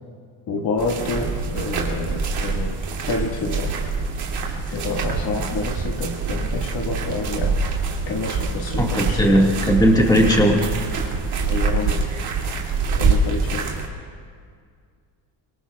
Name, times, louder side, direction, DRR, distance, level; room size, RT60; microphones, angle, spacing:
voice 1, 0.5-2.8 3.1-3.8 4.7-7.6 8.1-9.5 11.4-12.0 13.0-13.7, left 3 dB, 50° left, 1 dB, 1.9 m, -28 dB
sound 1, 0.8-13.9, right 4 dB, 60° right, 2.6 m, -25 dB
voice 2, 8.8-10.7, equal, 10° left, -1 dB, 1.8 m, -17 dB
24.5 x 23.5 x 2.4 m, 2.1 s
cardioid pair, 135°, 45 cm